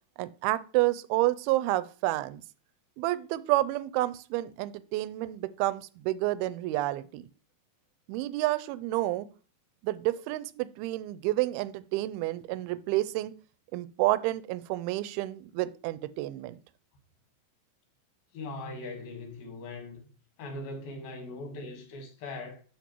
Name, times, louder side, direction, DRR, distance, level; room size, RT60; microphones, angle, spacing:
voice 1, 0.2-2.4 3.0-7.3 8.1-9.3 9.8-13.3 13.7-16.6, right 17 dB, 90° right, 2.5 m, -29 dB
voice 2, 18.3-20.0 20.4-22.6, left 2 dB, 75° left, 3.3 m, -40 dB
12.5 x 4.4 x 2.9 m
omnidirectional pair, 4.3 m